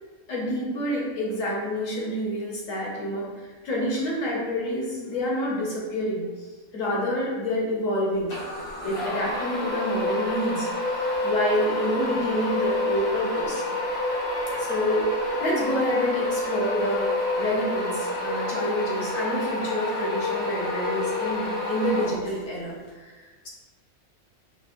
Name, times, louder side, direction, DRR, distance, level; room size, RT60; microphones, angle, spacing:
voice 1, 0.3-6.3 6.7-8.4 8.8-10.7 11.2-13.7 14.5-23.5, left 1 dB, 70° left, -4 dB, 1.3 m, -28 dB
sound 1, 8.3-22.6, left 1 dB, 85° left, 1.7 m, -28 dB
Wind instrument woodwind instrument, 14.1-19.8, left 3 dB, 70° right, 1.2 m, -48 dB
5.4 x 2.0 x 2.5 m, 1.3 s
omnidirectional pair, 1.4 m